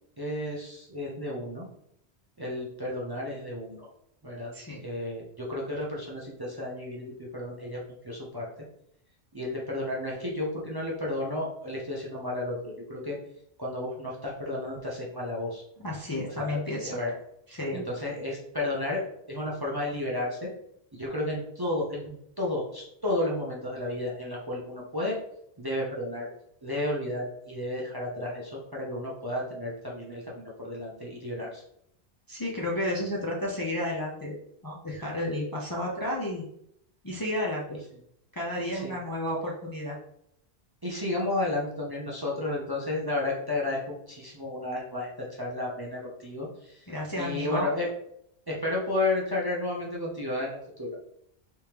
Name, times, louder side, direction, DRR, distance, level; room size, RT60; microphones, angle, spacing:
voice 1, 0.2-1.6 2.4-3.9 4.2-4.5 4.8-8.5 9.3-13.2 13.6-15.6 16.3-17.1 17.7-19.0 19.3-20.5 20.9-25.2 25.6-26.3 26.6-31.6 38.6-38.9 40.8-46.9 47.2-47.9 48.5-51.0, left 2 dB, 25° right, -4 dB, 0.6 m, -32 dB
voice 2, 15.8-17.0 17.5-17.9 32.3-34.4 34.6-36.5 37.0-37.8 38.3-40.0 46.9-47.7, left 1 dB, 25° left, -4 dB, 0.6 m, -32 dB
3.4 x 3.3 x 2.9 m, 0.73 s
omnidirectional pair, 1.1 m